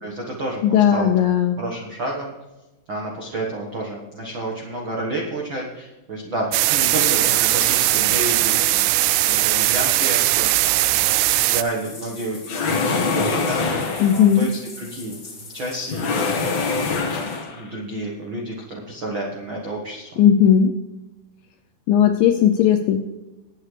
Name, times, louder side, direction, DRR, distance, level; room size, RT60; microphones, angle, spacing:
voice 1, 0.0-1.1 1.6-2.3 2.9-14.5 14.8-16.5 17.5-20.2, right 1 dB, 70° right, -1 dB, 1.1 m, -30 dB
voice 2, 0.6-1.6 14.0-14.5 20.2-20.7 21.9-23.1, left 9 dB, 80° left, 6 dB, 2.0 m, -16 dB
Bathtub (filling or washing), 6.5-16.6, left 3 dB, 30° left, 2.7 m, -41 dB
sound 1, 6.5-11.6, right 17 dB, 85° right, 2.6 m, -19 dB
sound 2, 12.5-14.3 15.9-17.7, left 4 dB, 55° left, 2.4 m, -24 dB
20.0 x 8.4 x 3.3 m, 1.1 s
omnidirectional pair, 4.6 m